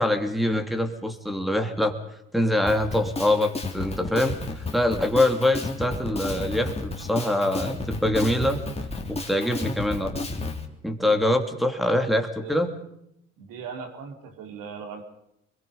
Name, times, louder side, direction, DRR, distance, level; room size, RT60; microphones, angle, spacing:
voice 1, 0.0-2.0 2.3-8.6 9.1-10.2 10.8-12.7, left 1 dB, ahead, 4 dB, 3.1 m, -24 dB
Drum kit, 2.7-10.6, left 2 dB, 15° left, 3.5 m, -32 dB
voice 2, 13.4-15.0, right 6 dB, 60° right, 5 dB, 4.2 m, -39 dB
25.5 x 22.0 x 5.4 m, 0.79 s
hypercardioid pair, 70°, 37 cm